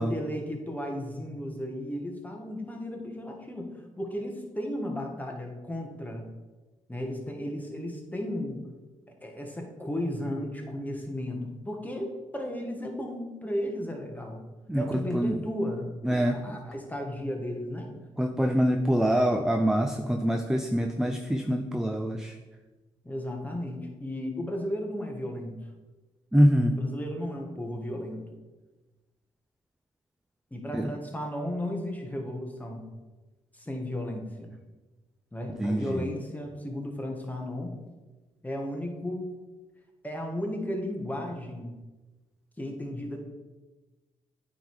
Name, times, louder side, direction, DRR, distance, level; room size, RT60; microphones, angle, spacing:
voice 1, 0.0-6.2 6.9-8.6 9.2-14.4 14.8-17.9 23.0-25.6 26.7-28.2 30.5-32.8 33.5-34.5 35.3-37.8 38.4-39.4 40.0-41.7 42.6-43.2, left 1 dB, 15° left, 1 dB, 1.7 m, -34 dB
voice 2, 14.7-15.4 16.0-16.6 18.2-22.4 26.3-26.8 30.7-30.9 35.6-36.1, equal, 5° right, 5 dB, 0.6 m, -25 dB
8.8 x 3.6 x 4.8 m, 1.2 s
supercardioid pair, 55°, 12 cm